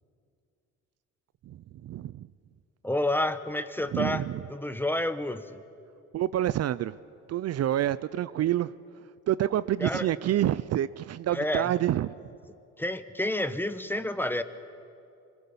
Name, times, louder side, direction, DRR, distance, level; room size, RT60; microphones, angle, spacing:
voice 1, 1.5-2.3 3.8-4.5 6.1-7.0 7.3-8.7 9.3-12.1, right 12 dB, 55° right, 16 dB, 0.5 m, -28 dB
voice 2, 2.8-4.2 4.5-5.6 9.8-10.1 11.3-11.7 12.8-14.4, left 1 dB, 5° left, 11 dB, 0.9 m, -29 dB
25.0 x 15.5 x 7.1 m, 2.6 s
cardioid pair, 90°, 30 cm